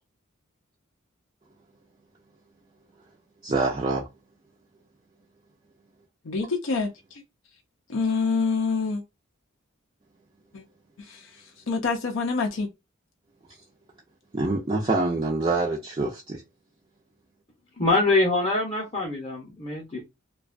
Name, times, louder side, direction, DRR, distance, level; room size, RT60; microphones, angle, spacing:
voice 1, 3.4-4.1 14.3-16.4, right 2 dB, 25° right, 0.4 m, -25 dB
voice 2, 6.2-7.2 7.9-9.0 10.5-10.6 11.0-12.7, left 4 dB, 65° left, 0.5 m, -27 dB
voice 3, 17.8-20.0, left 2 dB, 25° left, 0.7 m, -24 dB
2.5 x 2.2 x 2.4 m
head